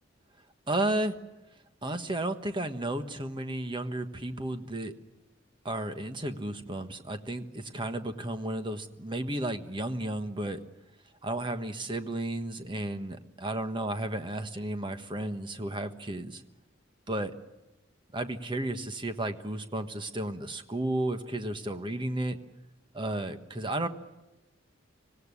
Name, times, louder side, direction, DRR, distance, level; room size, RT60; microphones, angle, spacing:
voice 1, 0.7-1.1 1.8-4.9 5.6-10.6 11.2-16.4 17.1-17.3 18.1-22.4 22.9-23.9, right 1 dB, 25° right, 8 dB, 1.4 m, -33 dB
25.5 x 17.5 x 9.9 m, 1.0 s
head